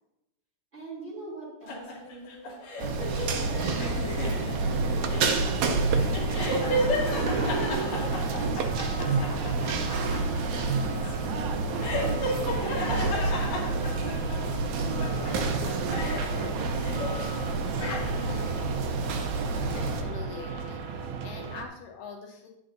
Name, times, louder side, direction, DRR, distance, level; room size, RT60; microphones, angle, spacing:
voice 1, 0.7-2.5 3.2-4.0 4.4-7.1 7.7-9.4 10.5-13.5 14.3-16.6 17.3-19.1, equal, 20° right, -7 dB, 2.8 m, -44 dB
sound 1, 1.7-14.6 15.0-17.3 17.6-18.4, left 1 dB, 60° left, 2.4 m, -34 dB
sound 2, 2.8-20.0, right 3 dB, 70° right, 2.1 m, -28 dB
sound 3, 4.6-21.6, right 5 dB, 85° right, 1.6 m, -39 dB
voice 2, 19.7-22.5, left 5 dB, 75° left, 2 dB, 2.2 m, -43 dB
11.0 x 7.8 x 2.6 m, 0.91 s
omnidirectional pair, 4.1 m